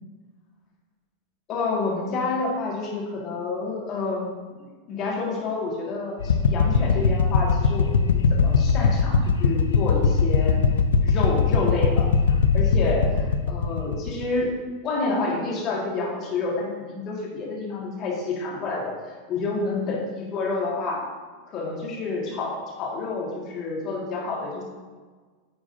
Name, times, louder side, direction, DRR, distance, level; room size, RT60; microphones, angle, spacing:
voice 1, 1.5-4.3 4.6-8.0 8.3-10.6 11.0-14.5 14.8-21.1 21.5-24.6, left 3 dB, 40° left, -2 dB, 1.9 m, -29 dB
sound 1, 6.2-14.4, left 5 dB, 80° left, 0.4 m, -21 dB
9.6 x 4.6 x 2.7 m, 1.4 s
hypercardioid pair, 95°, 0 cm